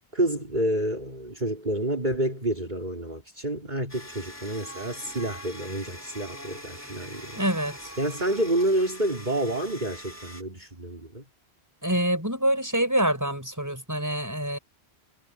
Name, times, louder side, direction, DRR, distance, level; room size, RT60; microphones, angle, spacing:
voice 1, 0.1-7.4 8.0-11.2, right 1 dB, 45° right, 4.5 m, -29 dB
sound 1, 3.9-10.4, equal, 15° left, 4.3 m, -43 dB
voice 2, 7.4-7.8 11.8-14.6, right 1 dB, 15° right, 6.6 m, -26 dB
omnidirectional pair, 1.1 m